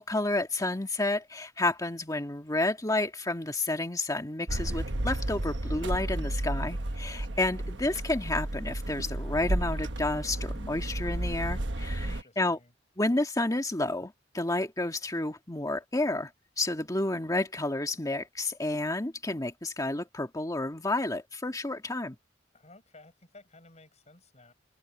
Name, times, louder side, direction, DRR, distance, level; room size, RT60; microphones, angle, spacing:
voice 1, 0.0-12.6 13.0-16.3 16.6-22.2, left 2 dB, 20° left, 1.9 m, -30 dB
sound 1, 4.5-12.2, right 1 dB, 70° right, 1.3 m, -32 dB
voice 2, 12.0-12.7 22.5-24.5, left 2 dB, 40° left, 7.4 m, -55 dB
head